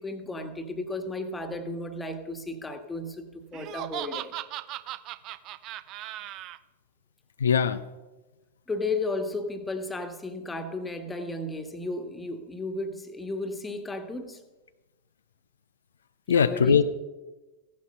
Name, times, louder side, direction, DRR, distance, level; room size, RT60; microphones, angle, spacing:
voice 1, 0.0-4.3 8.7-14.4 16.3-16.8, left 2 dB, 10° left, 7 dB, 1.6 m, -34 dB
Laughter, 3.5-6.6, right 14 dB, 40° right, 0.6 m, -37 dB
voice 2, 7.4-7.8 16.3-16.8, left 7 dB, 70° left, 11 dB, 0.5 m, -21 dB
15.5 x 11.5 x 5.5 m, 1.1 s
figure-of-eight pair, 90°, 0 cm